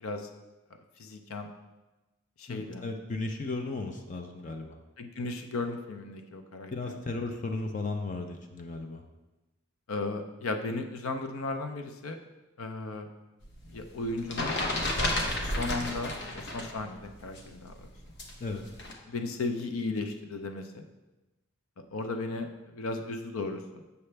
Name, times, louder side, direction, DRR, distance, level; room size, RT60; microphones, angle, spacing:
voice 1, 1.0-1.5 2.4-2.8 5.0-6.9 9.9-12.2 12.6-13.1 13.7-14.5 15.4-17.9 19.1-20.8 21.9-22.5 22.7-23.8, left 3 dB, 85° left, 6 dB, 0.6 m, -35 dB
voice 2, 2.5-4.8 6.7-9.0 18.4-18.6, left 3 dB, 40° left, 4 dB, 0.5 m, -35 dB
sound 1, 13.4-16.8 17.0-18.9, left 1 dB, 55° left, 1.0 m, -32 dB
6.9 x 6.7 x 3.3 m, 1.1 s
head